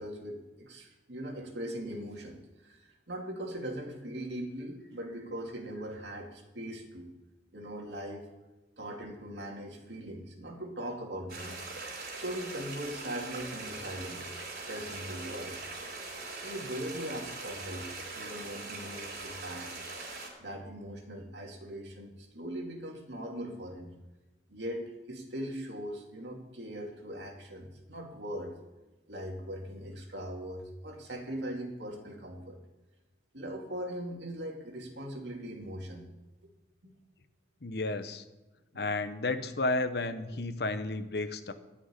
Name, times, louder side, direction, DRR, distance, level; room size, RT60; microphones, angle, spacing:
voice 1, 0.0-7.1 7.5-8.2 8.8-15.6 16.3-17.9 18.2-19.8 20.4-23.9 24.5-28.5 29.1-32.6 33.3-36.1 36.8-36.9, equal, 75° right, 1 dB, 2.6 m, -40 dB
sound 1, 11.3-20.3, right 3 dB, 60° right, 4.1 m, -41 dB
voice 2, 37.6-38.2 38.7-41.5, left 2 dB, 65° left, 11 dB, 0.9 m, -32 dB
13.0 x 6.1 x 9.7 m, 1.1 s
head